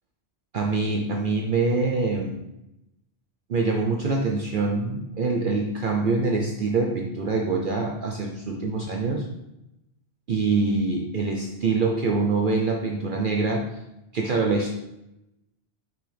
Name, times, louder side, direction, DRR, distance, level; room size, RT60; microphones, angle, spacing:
voice 1, 0.5-2.4 3.5-9.3 10.3-13.7 14.1-14.7, right 3 dB, 55° right, 1 dB, 0.7 m, -25 dB
6.0 x 5.8 x 3.4 m, 0.88 s
omnidirectional pair, 1.2 m